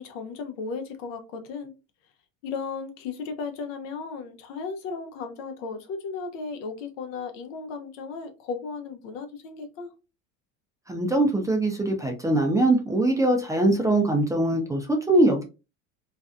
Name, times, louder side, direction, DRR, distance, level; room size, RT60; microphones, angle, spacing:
voice 1, 0.0-1.7 2.4-9.9, left 4 dB, 75° left, 0.7 m, -35 dB
voice 2, 10.9-15.4, right 2 dB, 10° right, 0.4 m, -22 dB
2.5 x 2.2 x 2.4 m
supercardioid pair, 105°, 38 cm